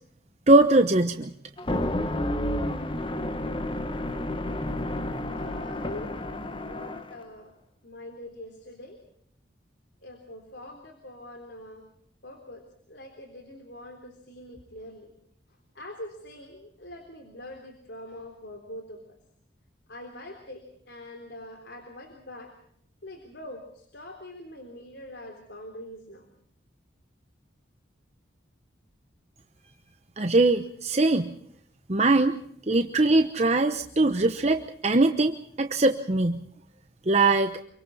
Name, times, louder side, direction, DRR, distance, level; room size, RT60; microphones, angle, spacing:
voice 1, 0.5-1.3 30.2-31.3 31.9-32.4 32.7-36.4 37.1-37.5, right 2 dB, 35° right, 7 dB, 1.0 m, -21 dB
sound 1, 1.6-7.2, left 1 dB, 30° left, 1.2 m, -30 dB
voice 2, 5.3-6.2 6.6-7.6 7.8-9.0 10.0-11.8 12.2-12.6 12.9-15.1 15.8-19.0 19.9-22.5 23.0-26.3, left 1 dB, 70° left, 4 dB, 3.5 m, -43 dB
27.5 x 24.0 x 4.2 m, 0.67 s
head